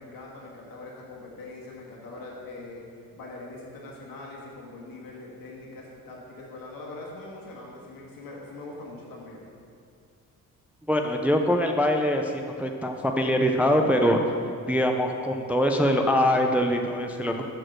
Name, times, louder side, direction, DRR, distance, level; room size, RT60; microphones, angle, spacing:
voice 1, 0.0-9.4, left 2 dB, 75° left, -3 dB, 1.7 m, -42 dB
voice 2, 10.9-14.2 14.7-17.5, equal, 5° right, 3 dB, 0.3 m, -23 dB
6.5 x 4.7 x 6.1 m, 2.3 s
cardioid pair, 125°, 34 cm